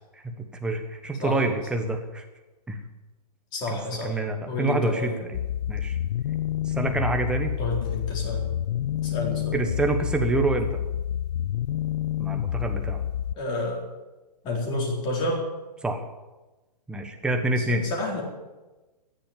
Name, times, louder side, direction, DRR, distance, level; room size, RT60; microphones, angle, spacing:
voice 1, 0.2-2.2 2.7-2.8 3.7-3.8 4.0-5.3 5.7-6.0 6.6-7.5 9.5-10.7 12.2-13.0 15.8-16.0 16.9-17.8, right 2 dB, 5° right, 4 dB, 1.3 m, -27 dB
voice 2, 3.5-4.2 4.4-5.1 7.6-8.5 9.0-9.6 13.4-13.8 14.4-15.5 17.6-18.2, left 2 dB, 20° left, 0 dB, 4.2 m, -29 dB
sound 1, 5.3-13.3, left 11 dB, 80° left, 0.4 m, -28 dB
14.5 x 10.5 x 9.2 m, 1.1 s
hypercardioid pair, 160°, 21 cm